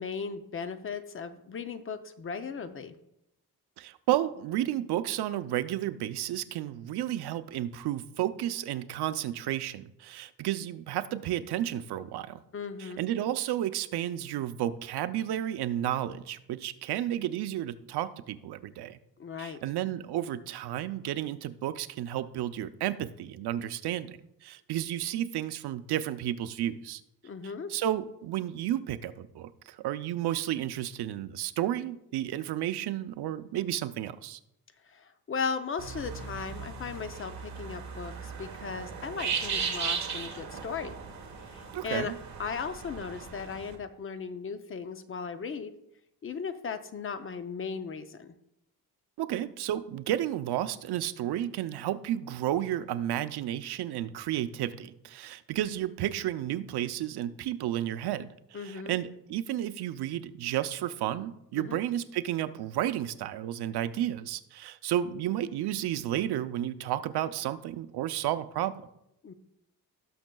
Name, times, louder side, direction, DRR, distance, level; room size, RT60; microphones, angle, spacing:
voice 1, 0.0-2.9 12.5-13.0 19.2-19.6 27.2-27.7 34.9-40.9 41.5-42.1 42.4-45.7 46.2-48.3 58.5-59.0 61.5-61.8 69.2-69.3, left 5 dB, 35° left, 10 dB, 0.5 m, -37 dB
voice 2, 3.8-12.4 12.8-19.0 19.4-27.0 27.7-34.4 41.7-42.2 49.2-68.7, right 12 dB, 85° right, 12 dB, 0.6 m, -32 dB
sound 1, 35.8-43.7, right 6 dB, 45° right, 1.3 m, -37 dB
18.0 x 6.3 x 2.3 m, 0.82 s
wide cardioid pair, 155°, 38 cm